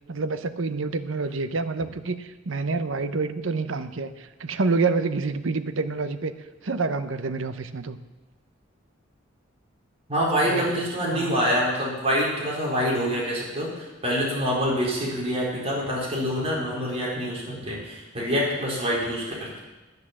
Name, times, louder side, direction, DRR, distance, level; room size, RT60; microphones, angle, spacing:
voice 1, 0.1-6.4 6.6-8.0 10.4-10.9 11.1-11.3, right 3 dB, 80° right, 11 dB, 0.8 m, -27 dB
voice 2, 10.1-19.6, equal, 30° right, -4 dB, 4.5 m, -26 dB
10.5 x 10.0 x 7.4 m, 1.1 s
head